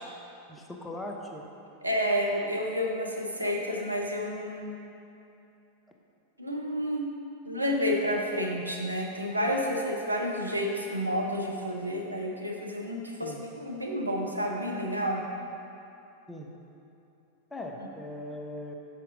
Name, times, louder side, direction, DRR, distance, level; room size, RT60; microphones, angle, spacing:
voice 1, 0.5-1.4 13.2-13.4 16.3-16.5 17.5-18.7, left 1 dB, 10° left, 0 dB, 0.6 m, -39 dB
voice 2, 1.8-4.8 6.4-7.1 7.4-15.2, equal, 85° right, 0 dB, 0.6 m, -30 dB
5.8 x 5.4 x 3.7 m, 2.8 s
figure-of-eight pair, 90°, 0 cm